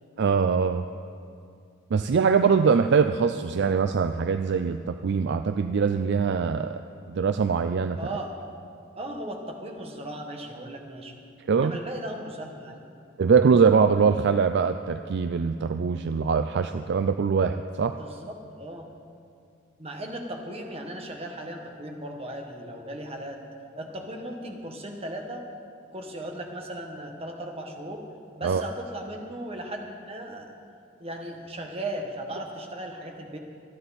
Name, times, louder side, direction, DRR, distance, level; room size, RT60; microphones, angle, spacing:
voice 1, 0.2-0.9 1.9-6.8 7.1-8.0 11.5-11.8 13.2-17.9 28.4-28.6, right 5 dB, 55° right, 9 dB, 0.4 m, -22 dB
voice 2, 8.0-8.3 9.0-11.1 11.5-12.9 18.0-18.9 19.8-23.4 23.8-25.4 25.9-28.0 28.4-30.5 31.0-33.4, right 1 dB, 30° right, 2 dB, 1.5 m, -37 dB
25.5 x 9.7 x 4.2 m, 2.4 s
head